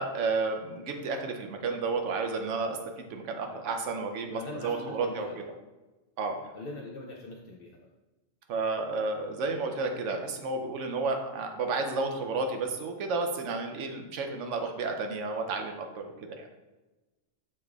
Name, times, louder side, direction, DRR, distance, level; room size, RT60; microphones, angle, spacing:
voice 1, 0.0-5.3 6.2-6.3 8.5-16.5, right 3 dB, 75° right, 4 dB, 1.0 m, -32 dB
voice 2, 4.3-5.5 6.3-7.8 14.6-14.7, left 2 dB, 60° left, 0 dB, 0.6 m, -43 dB
7.1 x 3.2 x 2.3 m, 1.1 s
omnidirectional pair, 1.3 m